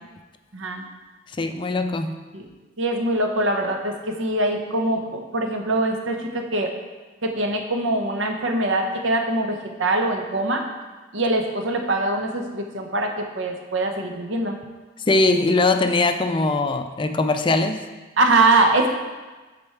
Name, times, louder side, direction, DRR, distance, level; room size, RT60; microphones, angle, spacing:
voice 1, 0.5-0.8 2.3-2.4 2.8-6.7 7.2-10.6 11.1-14.6 18.2-18.9, right 2 dB, 70° right, 3 dB, 0.9 m, -23 dB
voice 2, 1.4-2.2 15.1-17.8, left 2 dB, 25° left, 8 dB, 0.4 m, -21 dB
8.9 x 4.3 x 4.5 m, 1.3 s
head